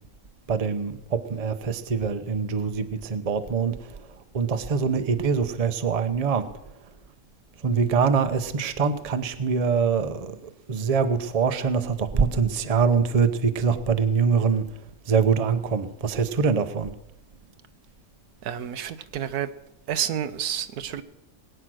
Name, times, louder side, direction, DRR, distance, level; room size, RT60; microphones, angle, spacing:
voice 1, 0.5-4.0 4.3-6.5 7.6-10.4 10.7-14.7 15.1-16.9, right 5 dB, 30° right, 9 dB, 0.8 m, -24 dB
voice 2, 18.4-19.5 19.9-21.0, right 9 dB, 80° right, 12 dB, 1.3 m, -29 dB
20.5 x 9.1 x 6.3 m, 0.87 s
omnidirectional pair, 1.6 m